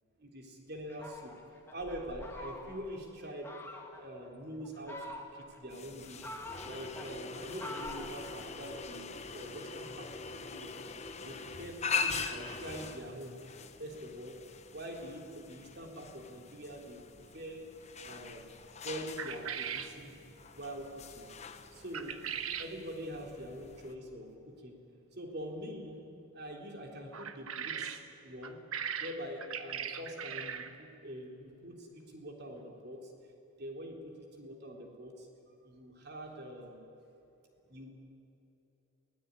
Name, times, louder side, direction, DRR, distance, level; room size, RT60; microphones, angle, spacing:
voice 1, 0.2-1.3 1.7-3.6 3.9-6.2 6.6-10.8 11.2-17.0 17.3-17.7 18.0-18.5 18.8-20.2 20.5-21.3 21.7-22.2 22.6-24.8 25.1-26.0 26.3-28.6 29.0-33.1 33.6-35.3 35.6-36.8 37.7-37.9, equal, 50° right, 2 dB, 3.7 m, -44 dB
Fowl, 0.9-3.0 3.4-4.1 4.6-5.6 6.0-8.8, left 1 dB, 10° left, 1.9 m, -46 dB
sound 1, 5.7-23.9, left 5 dB, 30° left, 1.1 m, -42 dB
sound 2, 19.2-20.0 21.9-22.7 27.1-28.0 28.4-30.7, right 8 dB, 85° right, 1.3 m, -39 dB
23.0 x 18.0 x 9.7 m, 3.0 s
head